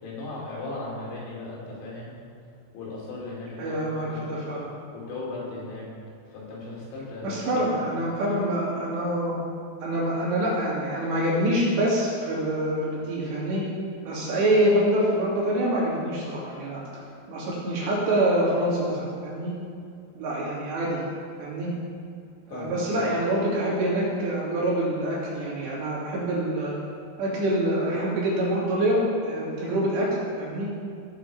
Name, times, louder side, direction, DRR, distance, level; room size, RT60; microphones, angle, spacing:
voice 1, 0.0-2.1 2.7-3.8 4.1-4.2 4.9-5.9 6.3-7.4 7.7-7.8 22.5-22.8, left 2 dB, 85° left, -5 dB, 5.2 m, -36 dB
voice 2, 3.6-4.7 7.2-9.4 9.8-13.6 14.1-16.8 17.3-19.5 20.2-21.0 21.4-21.7 22.5-26.8 27.2-30.1 30.4-30.7, right 1 dB, 80° right, -6 dB, 4.9 m, -25 dB
16.0 x 7.4 x 4.9 m, 2.4 s
omnidirectional pair, 5.0 m